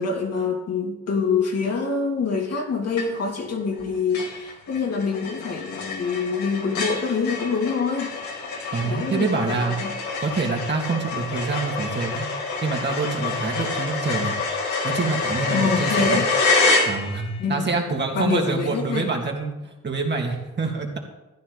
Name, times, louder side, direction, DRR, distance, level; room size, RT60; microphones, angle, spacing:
voice 1, 0.0-8.1 8.8-9.9 15.5-16.3 17.4-17.6 18.1-19.1, left 4 dB, 55° left, -1 dB, 3.2 m, -25 dB
sound 1, 3.0-3.4 3.8-3.9 4.1-17.4, left 3 dB, 70° left, 3.2 m, -27 dB
voice 2, 8.7-9.8 10.2-12.3 12.6-14.3 14.8-16.2 16.9-19.5 19.8-21.0, right 4 dB, 35° right, 0 dB, 2.5 m, -26 dB
15.0 x 9.8 x 4.1 m, 1.0 s
cardioid pair, 90°, 30 cm